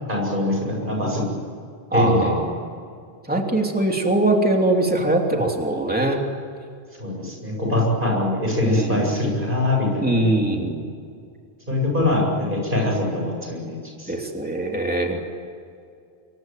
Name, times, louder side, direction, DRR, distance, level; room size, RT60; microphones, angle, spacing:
voice 1, 0.1-1.2 1.9-2.4 7.0-10.3 11.7-14.1, left 1 dB, 50° right, -1 dB, 8.1 m, -23 dB
voice 2, 1.9-2.6 3.3-6.2 8.6-9.1 10.0-10.9 14.1-15.2, right 1 dB, 10° right, 1 dB, 3.1 m, -22 dB
27.0 x 23.0 x 9.3 m, 2.3 s
omnidirectional pair, 1.1 m